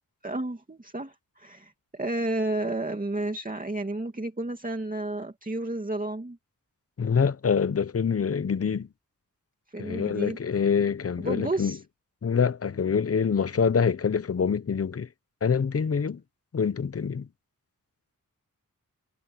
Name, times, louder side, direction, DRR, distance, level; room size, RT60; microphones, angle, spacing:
voice 1, 0.2-6.4 9.7-10.4 11.2-11.8, right 2 dB, 25° right, 2.6 m, -31 dB
voice 2, 7.0-8.9 9.8-11.8 12.2-15.1 15.4-16.2 16.5-17.3, left 6 dB, 45° left, 0.7 m, -25 dB
wide cardioid pair, 90°, 34 cm